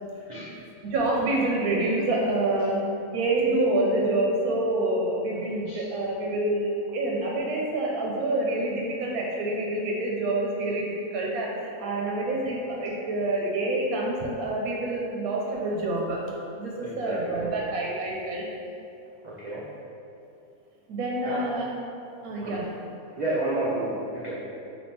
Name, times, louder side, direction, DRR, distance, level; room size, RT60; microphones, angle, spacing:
voice 1, 0.8-2.8 3.1-16.2 16.6-18.5 20.9-21.8 22.2-22.7, right 2 dB, 85° right, -2 dB, 1.1 m, -27 dB
voice 2, 16.8-17.5 19.2-19.7 21.2-21.4 22.4-22.5 23.2-24.4, right 2 dB, 65° right, -8 dB, 0.4 m, -30 dB
3.5 x 2.7 x 4.1 m, 2.6 s
omnidirectional pair, 1.5 m